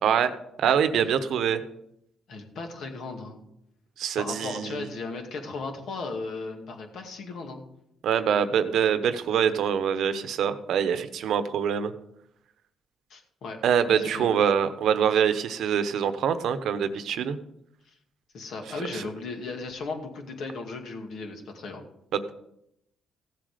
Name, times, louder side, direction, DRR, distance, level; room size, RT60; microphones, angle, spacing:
voice 1, 0.0-0.3 0.6-1.6 4.0-4.9 8.0-11.9 13.6-17.4 18.9-19.0, right 8 dB, 75° right, 10 dB, 1.0 m, -24 dB
voice 2, 2.3-3.4 4.2-7.6 13.1-13.6 14.0-14.4 17.9-18.0 18.3-21.8, left 3 dB, 70° left, 3 dB, 2.3 m, -36 dB
16.0 x 7.7 x 5.1 m, 0.78 s
cardioid pair, 90°, 0 cm